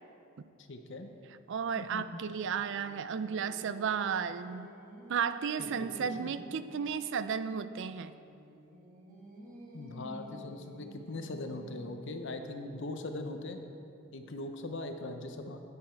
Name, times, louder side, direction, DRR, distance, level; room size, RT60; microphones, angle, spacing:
voice 1, 0.7-1.1 1.8-2.2 5.6-5.9 6.2-6.3 9.7-13.6 14.1-15.6, left 2 dB, 60° left, 6 dB, 0.8 m, -40 dB
voice 2, 1.5-4.7 5.1-8.1, right 6 dB, 60° right, 13 dB, 0.4 m, -33 dB
Singing, 2.2-7.6 8.2-12.1, right 1 dB, 40° right, 1.3 m, -51 dB
9.9 x 9.6 x 4.5 m, 2.7 s
head